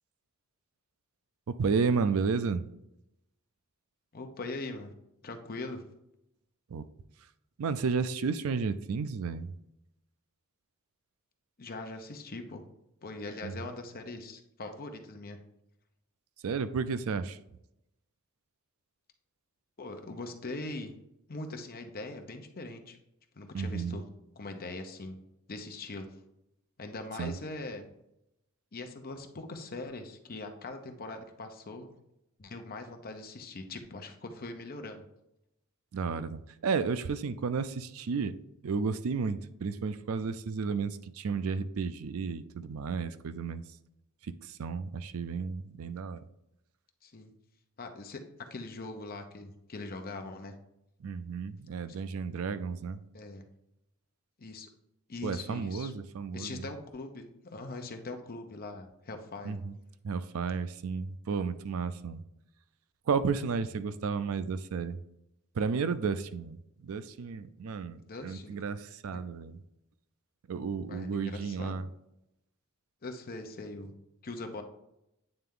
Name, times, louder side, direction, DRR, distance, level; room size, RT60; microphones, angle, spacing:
voice 1, 1.6-2.6 6.7-6.9 7.6-9.5 13.4-13.5 16.4-17.4 23.5-24.0 27.2-27.3 35.9-38.4 38.6-43.6 44.4-46.3 51.0-53.0 55.2-56.6 59.4-59.7 60.0-62.2 63.1-65.0 65.5-69.6 70.5-71.9, right 5 dB, 70° right, 13 dB, 0.4 m, -32 dB
voice 2, 4.1-4.9 5.2-5.9 11.6-12.6 13.0-15.4 19.8-20.9 21.3-23.0 23.3-24.1 24.4-25.2 25.5-26.1 26.8-27.9 28.7-31.9 32.4-35.0 47.0-47.3 47.8-50.5 53.1-53.5 54.4-54.7 55.1-55.9 56.3-59.6 68.0-68.5 69.1-69.2 70.9-71.8 73.0-73.9 74.2-74.6, left 2 dB, 40° left, 5 dB, 0.8 m, -41 dB
8.8 x 3.3 x 3.7 m, 0.85 s
head